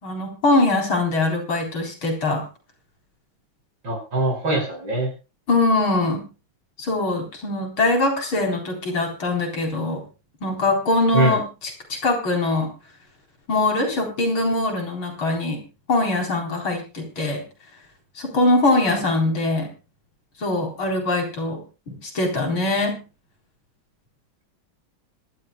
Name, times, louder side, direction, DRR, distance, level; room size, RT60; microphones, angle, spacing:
voice 1, 0.0-2.4 5.5-6.3 6.8-10.0 10.4-11.4 11.9-12.7 13.5-15.6 15.9-17.4 18.2-19.7 20.4-21.6 21.9-23.0, left 2 dB, 75° left, 2 dB, 5.0 m, -22 dB
voice 2, 3.8-5.1 11.1-11.4, right 2 dB, 60° right, 2 dB, 6.4 m, -22 dB
25.5 x 12.0 x 2.3 m, 0.31 s
omnidirectional pair, 2.2 m